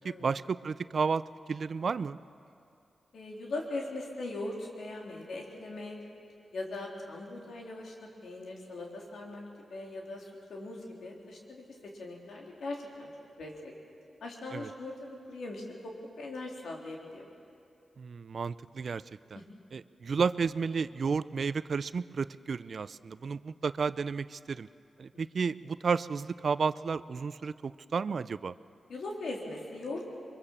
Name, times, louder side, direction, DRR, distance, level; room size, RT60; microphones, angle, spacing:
voice 1, 0.0-1.2 1.5-2.2 14.5-14.7 18.0-19.0 19.3-19.4 19.7-24.7 25.0-28.5, right 5 dB, 65° right, 16 dB, 0.5 m, -32 dB
voice 2, 3.1-6.0 6.5-7.9 8.2-9.4 9.7-13.1 13.4-13.7 14.2-14.9 15.3-17.3 19.3-19.4 25.1-25.2 28.9-30.0, left 2 dB, 80° left, -1 dB, 3.6 m, -40 dB
24.0 x 23.0 x 7.3 m, 2.5 s
cardioid pair, 55°, 0 cm